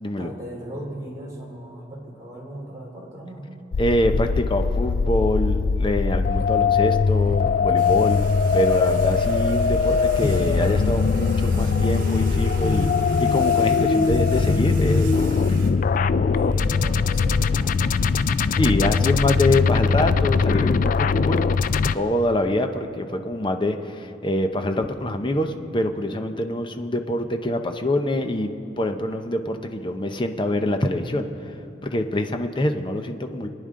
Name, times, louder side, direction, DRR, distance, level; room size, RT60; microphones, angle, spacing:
voice 1, 0.0-3.5 16.3-19.2, right 1 dB, 20° right, -3 dB, 2.9 m, -38 dB
sound 1, 3.7-21.9, left 5 dB, 50° left, 0.3 m, -21 dB
voice 2, 3.8-8.2 8.5-12.9 13.2-15.6 18.6-21.5 21.9-28.5 28.8-31.3 31.8-33.5, left 1 dB, 30° left, 6 dB, 0.7 m, -25 dB
sound 2, 7.8-15.7, right 3 dB, 55° right, 1.5 m, -40 dB
28.0 x 10.0 x 3.8 m, 2.9 s
head